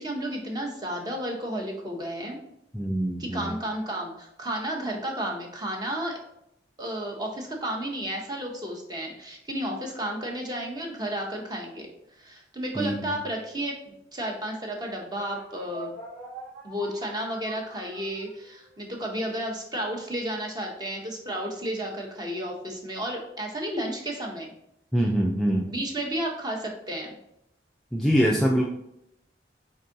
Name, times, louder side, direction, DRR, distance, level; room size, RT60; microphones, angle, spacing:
voice 1, 0.0-2.4 3.2-6.2 6.8-11.9 12.2-15.9 16.6-24.5 25.5-27.1, right 1 dB, 25° right, 0 dB, 0.8 m, -32 dB
voice 2, 2.7-3.5 12.8-13.1 24.9-25.7 27.9-28.7, equal, ahead, -2 dB, 0.4 m, -24 dB
sound 1, 15.2-18.7, right 2 dB, 60° right, 1.2 m, -43 dB
4.5 x 3.9 x 2.6 m, 0.79 s
head